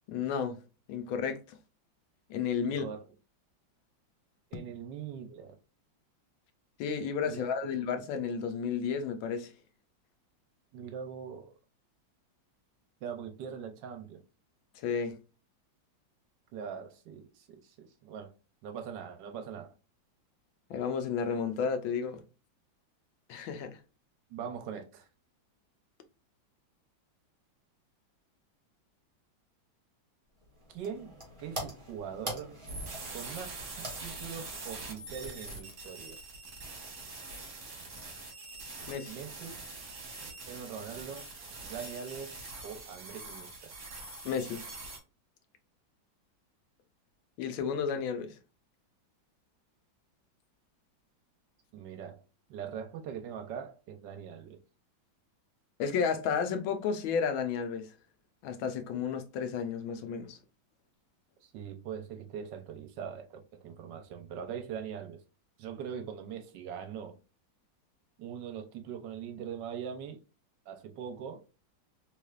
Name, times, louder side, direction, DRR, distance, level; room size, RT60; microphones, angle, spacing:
voice 1, 0.1-0.6 0.9-1.4 2.3-2.8 6.8-9.5 14.8-15.1 20.7-22.2 23.3-23.8 38.9-39.2 44.2-44.7 47.4-48.3 55.8-57.9 58.4-60.4, left 6 dB, 90° left, 1.4 m, -32 dB
voice 2, 2.6-3.0 4.5-5.6 7.2-7.7 10.7-11.5 13.0-14.2 16.5-18.3 18.6-19.7 24.3-25.1 30.7-31.1 31.4-32.6 33.1-33.5 33.8-36.2 39.1-39.6 40.5-41.3 41.6-42.4 42.6-43.7 51.7-52.2 52.5-54.6 61.5-65.2 65.6-67.1 68.2-70.2 70.7-71.4, right 7 dB, 70° right, 1.2 m, -42 dB
sound 1, 30.4-35.7, right 1 dB, 20° right, 1.0 m, -45 dB
sound 2, 32.7-45.0, right 3 dB, 45° right, 1.2 m, -44 dB
3.4 x 3.2 x 2.3 m
omnidirectional pair, 2.1 m